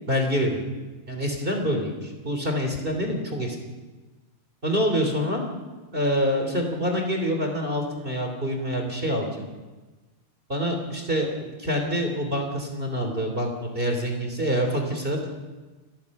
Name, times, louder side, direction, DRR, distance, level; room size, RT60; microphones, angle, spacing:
voice 1, 0.1-0.7 1.1-3.6 4.6-5.4 5.9-9.3 10.5-15.3, equal, 15° right, 3 dB, 2.4 m, -26 dB
29.5 x 20.0 x 5.4 m, 1.2 s
omnidirectional pair, 4.7 m